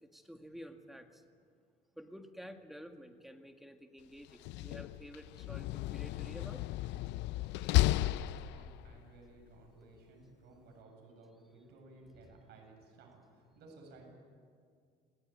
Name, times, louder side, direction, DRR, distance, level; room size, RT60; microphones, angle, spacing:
voice 1, 0.0-1.2 2.0-6.6 12.1-12.4, equal, ahead, 5 dB, 2.0 m, -51 dB
Slam, 4.3-9.0, left 16 dB, 85° left, 0.5 m, -33 dB
voice 2, 7.8-13.2 13.5-14.1, right 3 dB, 70° right, 1 dB, 7.5 m, -57 dB
28.0 x 18.0 x 9.3 m, 2.2 s
cardioid pair, 120°, 18 cm